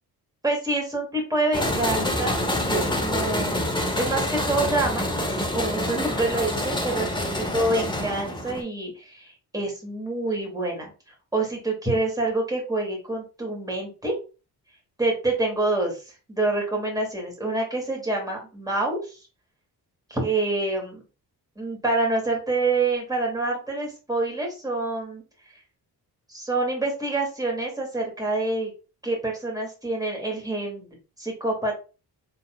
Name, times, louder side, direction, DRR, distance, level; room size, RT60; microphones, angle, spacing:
voice 1, 0.4-5.3 5.5-14.1 15.0-19.3 20.1-21.0 21.6-25.2 26.3-28.7 29.0-31.7, right 2 dB, 10° right, -1 dB, 2.3 m, -27 dB
sound 1, 1.5-8.6, left 1 dB, 10° left, 1.1 m, -27 dB
4.3 x 3.6 x 2.4 m, 0.32 s
cardioid pair, 75°, 40 cm